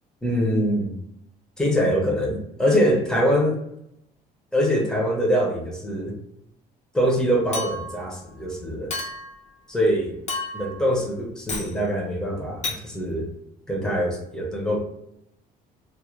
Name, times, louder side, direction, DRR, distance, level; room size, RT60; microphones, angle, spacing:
voice 1, 0.2-0.9 1.6-3.6 4.5-6.2 6.9-8.9 9.7-10.2 10.5-13.3 13.7-14.8, equal, 5° left, -1 dB, 0.7 m, -23 dB
Chink clink, 7.5-8.0 8.9-9.4 10.3-10.8 11.5-11.7 12.6-12.8, left 2 dB, 45° left, 0.6 m, -31 dB
2.5 x 2.0 x 3.0 m, 0.79 s
cardioid pair, 110°, 17 cm